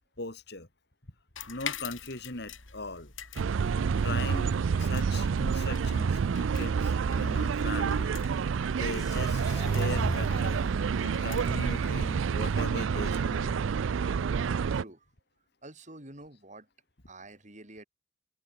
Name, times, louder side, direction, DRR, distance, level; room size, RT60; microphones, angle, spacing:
voice 1, 0.2-0.7 1.5-3.1 4.0-8.2 8.7-10.7 11.0-13.6, left 2 dB, 60° left, 3.9 m, -39 dB
sound 1, 1.4-12.7, left 8 dB, 85° left, 4.7 m, -46 dB
sound 2, 3.4-14.8, right 6 dB, 80° right, 0.4 m, -28 dB
sound 3, 8.9-10.9, left 1 dB, 20° left, 1.2 m, -38 dB
voice 2, 14.7-15.1 15.6-16.7 17.1-17.8, right 2 dB, 40° right, 7.8 m, -48 dB
head